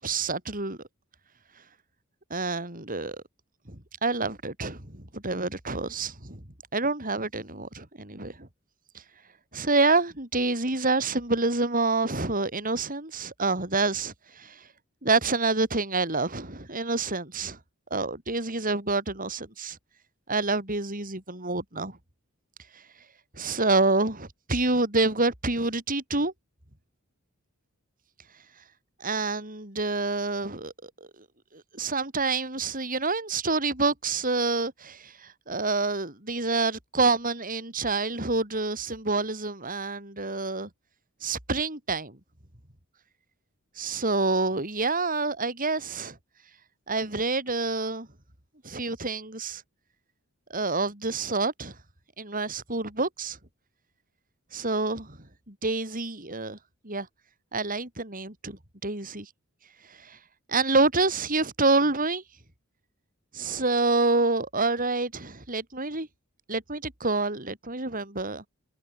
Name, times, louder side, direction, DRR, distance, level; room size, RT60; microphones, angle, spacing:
voice 1, 0.0-0.8 2.3-3.2 3.7-6.4 6.7-8.5 9.5-14.6 15.0-17.6 17.9-19.8 20.3-22.0 23.4-26.3 29.0-30.9 31.5-40.7 41.2-42.2 43.8-46.2 46.9-48.1 48.6-49.6 50.5-51.8 52.2-53.4 54.5-55.2 55.5-56.6 56.8-57.1 57.5-59.3 60.0-60.2 60.5-62.2 63.3-66.1 66.5-68.4, right 3 dB, 40° right, 7.4 m, -27 dB
head